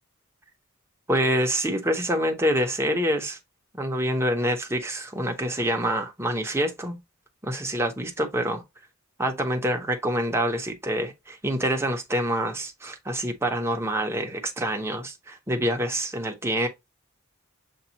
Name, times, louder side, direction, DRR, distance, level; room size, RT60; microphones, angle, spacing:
voice 1, 1.1-3.4 3.8-7.0 7.4-8.6 9.2-16.7, equal, 10° right, 0.7 m, -26 dB
6.9 x 2.3 x 2.8 m
head